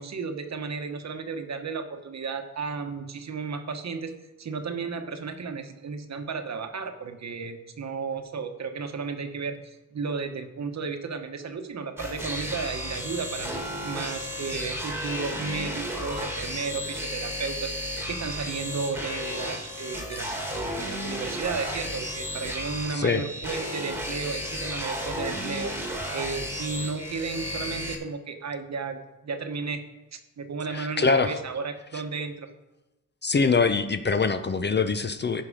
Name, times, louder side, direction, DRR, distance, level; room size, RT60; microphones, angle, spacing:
voice 1, 0.0-29.8 30.1-32.5, right 5 dB, 50° right, 7 dB, 1.1 m, -34 dB
sound 1, 12.0-27.9, equal, 5° right, 1.6 m, -33 dB
voice 2, 22.9-23.2 30.7-31.4 33.2-35.4, left 4 dB, 30° left, 10 dB, 0.5 m, -24 dB
15.5 x 5.8 x 5.0 m, 1.0 s
wide cardioid pair, 150°, 35 cm